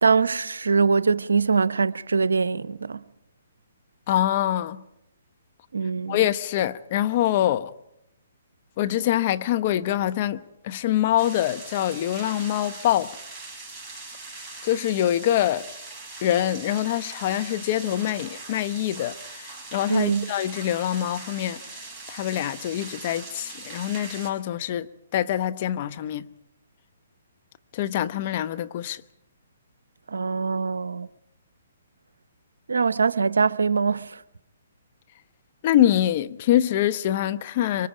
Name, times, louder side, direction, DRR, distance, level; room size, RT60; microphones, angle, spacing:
voice 1, 0.0-3.0 5.7-6.2 19.9-20.3 30.1-31.1 32.7-34.2, right 5 dB, 80° right, 0.7 m, -23 dB
voice 2, 4.1-4.8 6.1-7.7 8.8-10.4 10.6-13.1 14.6-15.6 16.2-21.6 22.1-26.3 27.7-29.0 35.6-37.9, left 12 dB, 40° left, 0.9 m, -24 dB
sound 1, 11.2-24.3, right 3 dB, 5° right, 5.4 m, -41 dB
25.0 x 24.0 x 5.0 m
figure-of-eight pair, 135°, 0 cm